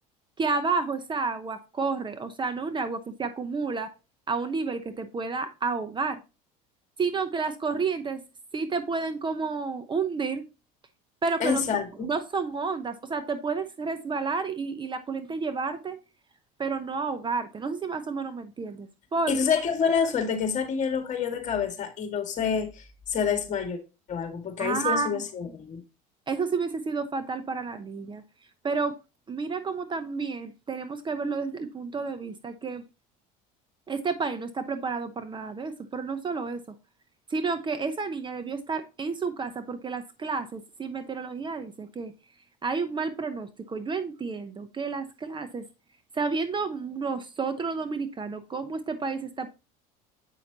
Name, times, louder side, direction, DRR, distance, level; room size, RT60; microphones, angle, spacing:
voice 1, 0.4-3.9 4.3-6.2 7.0-8.2 8.5-10.4 11.2-11.6 12.0-16.0 16.6-19.4 24.6-25.2 26.3-28.2 28.6-28.9 29.3-32.8 33.9-36.6 37.3-42.1 42.6-45.6 46.1-49.5, right 4 dB, 25° right, 0.8 m, -30 dB
voice 2, 11.4-12.1 19.3-22.8 23.1-23.8 24.1-25.8, left 6 dB, 40° left, 1.9 m, -27 dB
8.2 x 5.8 x 2.8 m
supercardioid pair, 100°, 19 cm